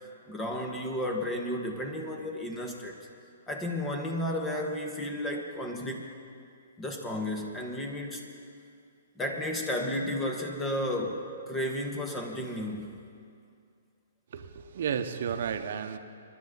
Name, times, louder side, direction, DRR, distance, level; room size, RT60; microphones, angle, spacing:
voice 1, 0.3-3.0 3.5-6.0 6.8-8.2 9.2-13.0, left 1 dB, 15° left, 1 dB, 2.1 m, -33 dB
voice 2, 14.3-16.0, right 7 dB, 65° right, 8 dB, 1.1 m, -32 dB
27.0 x 11.5 x 4.2 m, 2.3 s
hypercardioid pair, 135°, 0 cm